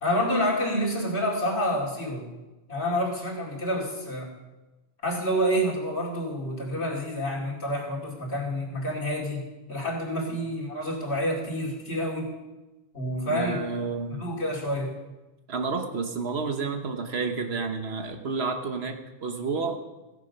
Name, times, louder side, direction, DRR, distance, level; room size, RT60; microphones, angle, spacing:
voice 1, 0.0-2.2 2.7-4.3 5.0-9.4 9.7-12.3 12.9-13.6 14.2-14.9, equal, 85° left, -3 dB, 2.9 m, -28 dB
voice 2, 13.3-14.2 15.5-19.8, right 4 dB, 70° right, 5 dB, 1.4 m, -30 dB
16.5 x 7.4 x 5.3 m, 1.1 s
omnidirectional pair, 1.1 m